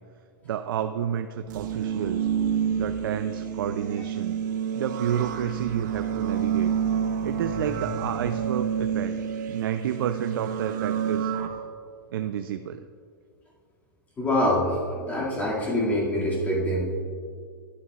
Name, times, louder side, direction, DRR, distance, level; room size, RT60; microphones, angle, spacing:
voice 1, 0.4-2.3 2.8-4.4 4.8-6.7 7.2-9.1 9.5-11.3 12.1-12.9, right 9 dB, 80° right, 8 dB, 0.4 m, -30 dB
sound 1, 1.5-11.5, right 8 dB, 60° right, 1.0 m, -29 dB
voice 2, 14.2-17.0, left 1 dB, 15° left, -5 dB, 2.3 m, -25 dB
12.5 x 11.0 x 2.4 m, 2.1 s
supercardioid pair, 160°, 12 cm